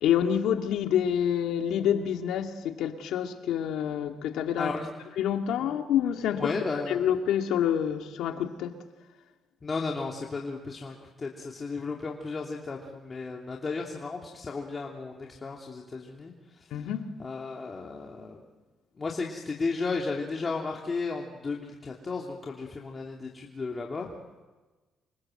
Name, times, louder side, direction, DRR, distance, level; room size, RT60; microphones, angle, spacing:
voice 1, 0.0-4.7 5.2-6.5 6.9-8.8 16.7-17.1, left 9 dB, 85° left, 2.1 m, -27 dB
voice 2, 4.6-4.9 5.6-5.8 6.3-7.0 9.6-16.7 17.2-18.4 19.0-24.1, left 4 dB, 35° left, 2.9 m, -34 dB
28.0 x 25.0 x 7.9 m
cardioid pair, 90°, 0 cm